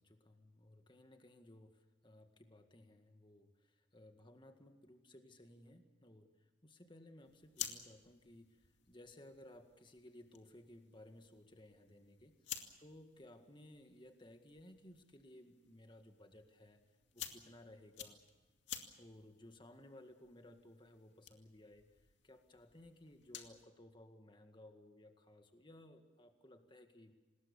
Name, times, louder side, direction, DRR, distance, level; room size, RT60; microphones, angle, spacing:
voice 1, 0.0-16.8 17.1-18.2 19.0-27.1, left 1 dB, 25° left, 6 dB, 1.9 m, -59 dB
sound 1, 7.2-23.7, left 10 dB, 75° left, 2.3 m, -53 dB
26.5 x 20.0 x 7.1 m, 1.2 s
head